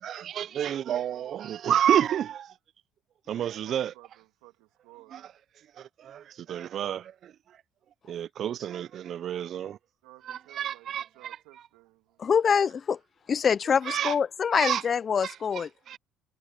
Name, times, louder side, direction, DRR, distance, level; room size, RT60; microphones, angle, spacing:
voice 1, 0.0-2.5 3.3-3.9 5.1-5.2 5.8-7.3 8.1-9.8 10.3-11.4 13.9-14.1 14.5-14.8 15.2-16.0, right 10 dB, 60° right, 0.4 m, -30 dB
voice 2, 3.3-5.3 10.0-12.2, right 20 dB, 85° right, 1.7 m, -55 dB
voice 3, 12.2-13.0 13.3-15.7, left 6 dB, 45° left, 0.5 m, -25 dB
supercardioid pair, 75°, 0 cm